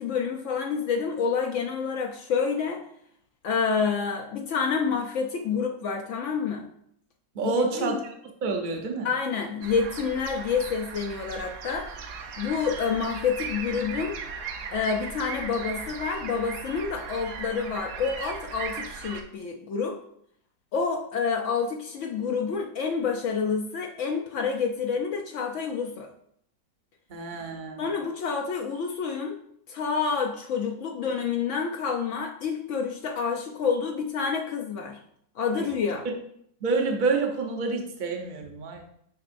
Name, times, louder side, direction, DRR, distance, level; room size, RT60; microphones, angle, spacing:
voice 1, 0.0-2.8 3.4-6.7 7.4-8.0 9.0-11.9 12.4-14.2 14.7-20.0 20.7-26.1 27.8-29.4 29.7-35.0 35.4-36.1, left 5 dB, 85° left, 2 dB, 0.6 m, -28 dB
voice 2, 7.3-8.1 8.4-9.1 27.1-27.8 36.6-38.8, right 4 dB, 50° right, 3 dB, 0.6 m, -28 dB
sound 1, 9.6-19.2, right 6 dB, 70° right, 1.1 m, -37 dB
7.1 x 5.3 x 2.6 m, 0.69 s
omnidirectional pair, 2.0 m